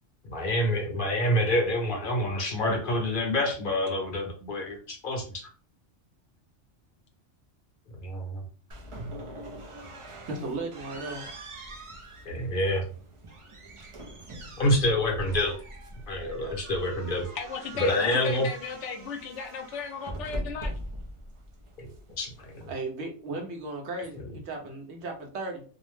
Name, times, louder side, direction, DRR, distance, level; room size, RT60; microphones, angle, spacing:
voice 1, 0.3-5.2 8.0-8.4 12.3-12.8 14.6-15.6 16.1-17.3 17.8-18.5 21.8-21.9 22.2-22.3 22.6-22.7, left 1 dB, 50° left, 1 dB, 0.8 m, -27 dB
sound 1, 8.7-22.8, right 1 dB, 50° right, 0.3 m, -42 dB
voice 2, 10.3-11.5 22.7-25.6, right 2 dB, 70° right, 2 dB, 1.0 m, -36 dB
voice 3, 17.3-20.7, left 5 dB, 80° left, 6 dB, 0.9 m, -36 dB
2.6 x 2.1 x 3.1 m, 0.39 s
omnidirectional pair, 1.2 m